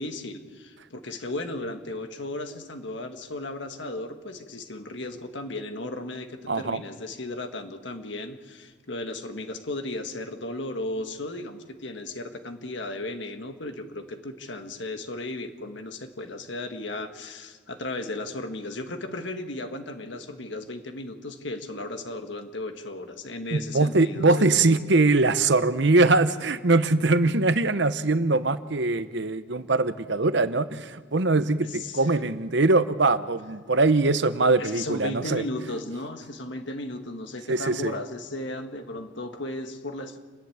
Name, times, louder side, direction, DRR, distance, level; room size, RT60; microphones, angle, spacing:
voice 1, 0.0-24.6 27.0-27.1 31.6-32.2 34.6-40.2, left 2 dB, 65° left, 6 dB, 1.8 m, -35 dB
voice 2, 6.5-6.8 23.5-35.4 37.5-37.9, right 3 dB, 60° right, 13 dB, 0.9 m, -22 dB
29.5 x 11.5 x 8.8 m, 1.5 s
head